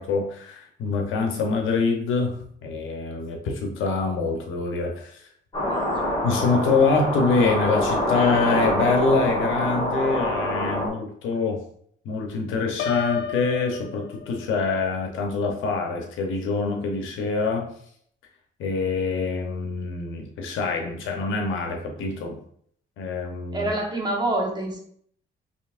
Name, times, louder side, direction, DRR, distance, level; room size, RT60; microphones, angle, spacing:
voice 1, 0.0-5.2 6.2-11.6 12.0-17.7 18.6-22.4 23.0-23.7, left 4 dB, 85° left, 2 dB, 0.9 m, -25 dB
sound 1, 5.5-10.9, left 1 dB, 25° left, 1.6 m, -25 dB
voice 2, 5.7-6.2 23.5-24.9, right 1 dB, 20° right, -1 dB, 1.2 m, -27 dB
Piano, 12.8-14.7, left 7 dB, 65° left, 0.4 m, -30 dB
4.5 x 3.1 x 2.5 m, 0.63 s
cardioid pair, 90°, 20 cm